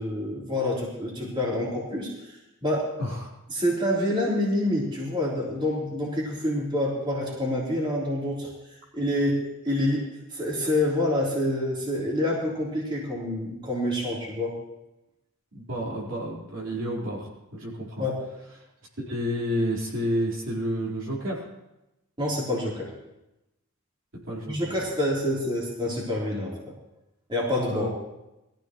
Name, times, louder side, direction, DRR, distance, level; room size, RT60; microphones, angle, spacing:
voice 1, 0.0-2.1 2.6-2.9 3.5-8.5 8.9-14.6 18.0-18.2 22.2-22.9 24.5-26.7 27.3-27.9, left 1 dB, 25° right, -5 dB, 3.6 m, -27 dB
voice 2, 3.0-3.3 15.5-18.1 19.0-21.5 24.3-24.7 27.7-27.9, equal, 60° right, -5 dB, 4.2 m, -30 dB
22.0 x 14.5 x 3.1 m, 0.93 s
head